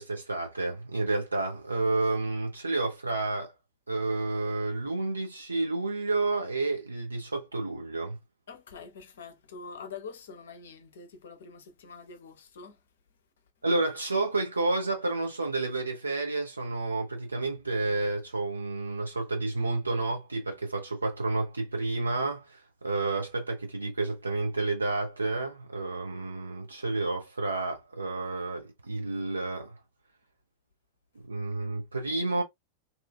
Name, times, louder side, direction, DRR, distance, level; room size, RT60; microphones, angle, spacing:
voice 1, 0.0-3.5 3.9-8.2 13.6-29.8 31.1-32.4, right 3 dB, 80° right, 0.8 m, -30 dB
voice 2, 8.5-12.8, left 5 dB, 65° left, 0.7 m, -45 dB
3.0 x 2.4 x 2.4 m
figure-of-eight pair, 90°, 0 cm